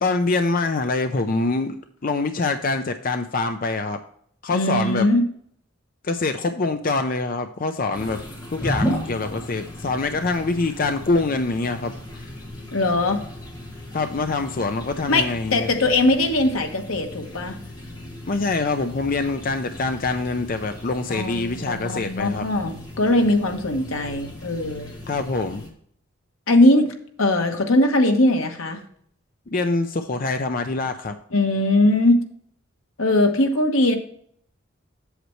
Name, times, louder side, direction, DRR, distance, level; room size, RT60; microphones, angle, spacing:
voice 1, 0.0-1.8 2.0-4.0 4.4-5.1 6.0-8.2 8.5-12.3 13.9-15.7 18.3-22.5 25.1-25.6 29.5-31.2, left 3 dB, 45° left, 7 dB, 0.5 m, -25 dB
voice 2, 4.5-5.2 12.7-13.2 15.1-17.6 21.1-24.9 26.5-28.8 31.3-32.2 33.0-34.0, left 1 dB, 85° left, 4 dB, 1.3 m, -20 dB
sound 1, 7.9-25.7, equal, 20° left, 1.8 m, -35 dB
8.0 x 7.5 x 3.1 m, 0.62 s
head